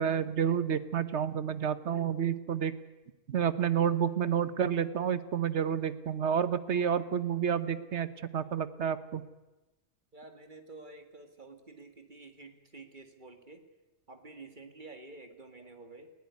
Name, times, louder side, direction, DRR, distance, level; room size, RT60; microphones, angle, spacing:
voice 1, 0.0-2.7 3.3-9.2, right 8 dB, 60° right, 13 dB, 1.3 m, -30 dB
voice 2, 10.1-13.7 14.1-16.1, right 3 dB, 40° right, 6 dB, 2.1 m, -50 dB
20.5 x 16.5 x 9.5 m, 1.1 s
omnidirectional pair, 1.3 m